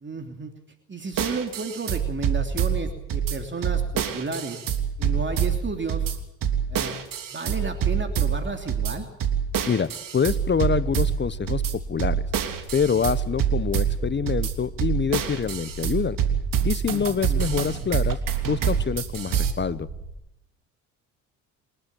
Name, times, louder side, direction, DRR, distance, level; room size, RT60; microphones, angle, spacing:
voice 1, 0.0-0.5 0.9-4.6 5.0-6.1 6.7-6.9 7.3-9.1 16.9-17.4, right 4 dB, 30° right, 5 dB, 3.0 m, -32 dB
sound 1, 1.1-19.5, right 8 dB, 55° right, 3.2 m, -26 dB
voice 2, 9.7-11.6 11.9-12.2 12.7-16.2 16.6-18.2 18.4-19.9, left 6 dB, 30° left, 16 dB, 1.0 m, -25 dB
sound 2, 10.1-20.1, right 3 dB, 85° right, 7.4 m, -39 dB
28.0 x 12.0 x 8.9 m, 0.88 s
hypercardioid pair, 65°, 39 cm